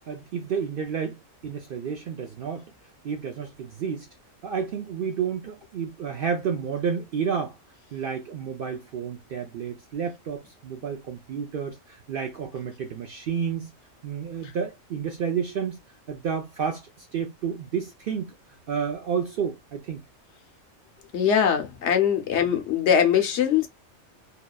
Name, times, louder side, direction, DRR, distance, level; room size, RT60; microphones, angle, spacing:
voice 1, 0.1-2.7 3.0-4.1 4.4-7.6 7.9-13.7 14.0-15.8 16.1-18.3 18.7-20.0, right 7 dB, 65° right, 0.6 m, -30 dB
voice 2, 21.1-23.7, left 8 dB, 65° left, 0.9 m, -22 dB
2.8 x 2.2 x 2.2 m
omnidirectional pair, 1.3 m